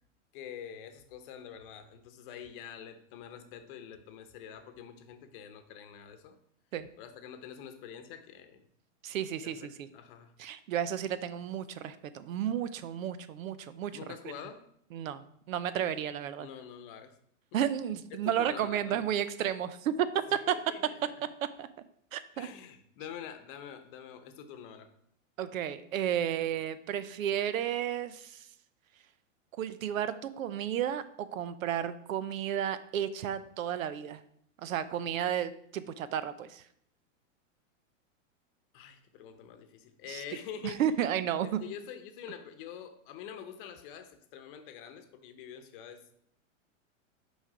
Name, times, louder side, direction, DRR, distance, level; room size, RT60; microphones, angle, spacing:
voice 1, 0.3-6.4 7.0-8.7 9.4-9.7 9.9-10.3 13.9-14.6 16.4-17.2 18.2-19.0 20.3-21.1 22.3-24.9 38.7-40.8 41.4-46.0, left 8 dB, 40° left, 8 dB, 0.9 m, -46 dB
voice 2, 9.0-9.9 10.4-13.9 14.9-16.5 17.5-20.6 21.6-21.7 22.1-22.5 25.4-28.5 29.6-34.2 34.6-36.6 40.1-40.2 40.6-41.6, right 10 dB, 80° right, 13 dB, 0.8 m, -32 dB
6.3 x 5.1 x 5.0 m, 0.70 s
supercardioid pair, 155°, 40 cm